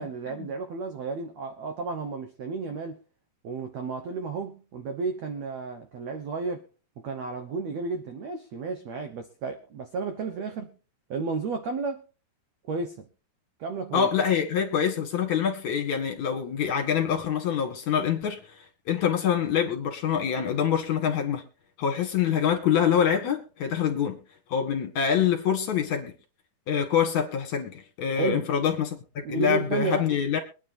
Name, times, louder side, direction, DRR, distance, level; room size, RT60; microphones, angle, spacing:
voice 1, 0.0-3.0 3.4-6.6 7.0-10.7 11.1-12.0 12.7-13.1 13.6-14.1 28.2-28.5 29.2-30.1, right 4 dB, 80° right, 1.5 m, -32 dB
voice 2, 13.9-21.4 21.8-24.2 24.5-26.1 26.7-30.4, left 8 dB, 50° left, 2.8 m, -25 dB
24.0 x 9.7 x 2.7 m
omnidirectional pair, 4.8 m